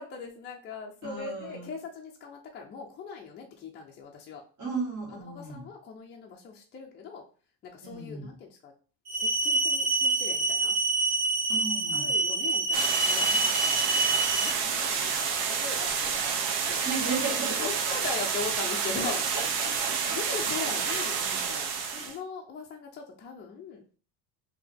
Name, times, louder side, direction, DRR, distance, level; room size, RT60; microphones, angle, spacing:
voice 1, 0.0-4.4 5.1-7.2 7.6-8.7 9.1-10.8 11.9-14.2 14.4-16.9 17.5-19.2 19.6-19.7 20.1-21.7 22.0-23.8, left 5 dB, 25° left, -1 dB, 0.4 m, -40 dB
voice 2, 1.0-1.7 4.6-5.7 7.8-8.3 11.5-12.2 16.8-17.7 19.0-20.2 20.8-21.1 21.9-22.2, right 3 dB, 45° right, -4 dB, 2.0 m, -35 dB
sound 1, 9.1-14.5, right 3 dB, 90° right, 1.1 m, -26 dB
sound 2, 12.7-22.2, right 6 dB, 60° right, 0.7 m, -29 dB
3.8 x 2.8 x 3.4 m, 0.38 s
cardioid pair, 165°, 43 cm